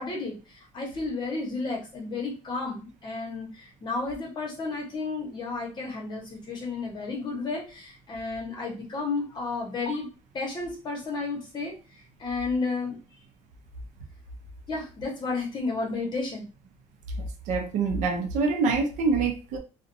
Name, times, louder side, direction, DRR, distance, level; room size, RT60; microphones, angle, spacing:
voice 1, 0.0-10.1 10.3-11.7 12.2-13.0 14.7-16.5, left 3 dB, 35° left, 1.0 m, -32 dB
voice 2, 17.5-19.6, right 4 dB, 75° right, 0.6 m, -25 dB
2.5 x 2.1 x 2.6 m
cardioid pair, 140°, 13 cm